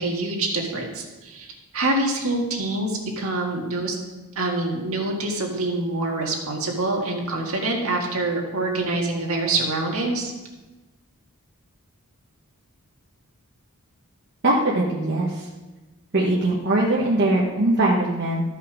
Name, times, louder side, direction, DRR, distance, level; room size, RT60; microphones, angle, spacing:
voice 1, 0.0-1.5 1.7-4.0 4.4-10.3, right 2 dB, 70° right, 0 dB, 1.8 m, -25 dB
voice 2, 14.4-15.5 16.1-18.4, right 1 dB, 50° right, -4 dB, 1.2 m, -21 dB
13.5 x 5.6 x 4.9 m, 1.1 s
head